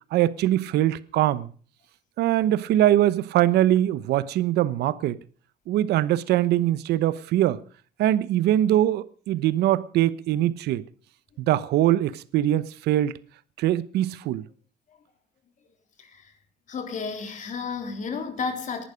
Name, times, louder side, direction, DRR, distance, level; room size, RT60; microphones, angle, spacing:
voice 1, 0.1-1.5 2.2-5.2 5.7-7.6 8.0-10.8 11.4-13.1 13.6-14.4, right 13 dB, 75° right, 0.9 m, -22 dB
voice 2, 16.0-16.3 16.7-18.8, left 5 dB, 50° left, 3.6 m, -32 dB
19.0 x 11.5 x 5.1 m
cardioid pair, 110°, 17 cm